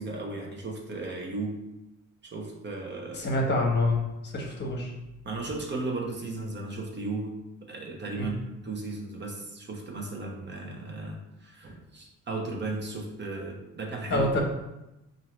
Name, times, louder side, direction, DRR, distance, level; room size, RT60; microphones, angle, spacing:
voice 1, 0.0-1.6 2.2-3.3 5.2-7.3 7.7-14.3, right 3 dB, 35° right, 1 dB, 1.0 m, -35 dB
voice 2, 3.1-4.9 8.2-8.3 14.1-14.4, left 2 dB, 35° left, 0 dB, 1.1 m, -27 dB
4.4 x 2.7 x 3.1 m, 0.93 s
cardioid pair, 90°, 30 cm